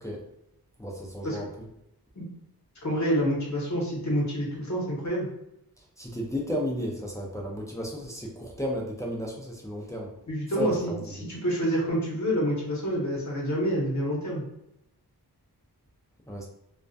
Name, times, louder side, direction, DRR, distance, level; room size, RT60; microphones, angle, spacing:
voice 1, 0.8-1.7 5.8-10.1 10.6-11.3 16.3-16.5, equal, 10° left, -2 dB, 0.4 m, -33 dB
voice 2, 2.8-5.3 10.3-14.4, equal, 45° left, -3 dB, 0.9 m, -28 dB
2.3 x 2.1 x 2.5 m, 0.82 s
wide cardioid pair, 90°, 40 cm